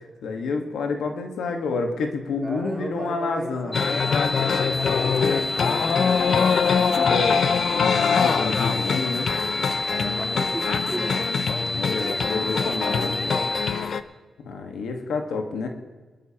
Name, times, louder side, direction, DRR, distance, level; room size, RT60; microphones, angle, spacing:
voice 1, 0.2-3.8 7.0-9.3 11.7-13.2 14.4-15.7, left 4 dB, 85° left, 4 dB, 1.4 m, -29 dB
voice 2, 2.4-6.7 9.9-11.3 11.9-13.7, right 1 dB, 20° right, -1 dB, 3.4 m, -36 dB
sound 1, 3.7-14.0, left 6 dB, 65° left, 0.6 m, -24 dB
sound 2, 3.7-13.7, left 1 dB, 15° left, 2.5 m, -30 dB
22.5 x 13.0 x 2.9 m, 1.3 s
cardioid pair, 65°, 0 cm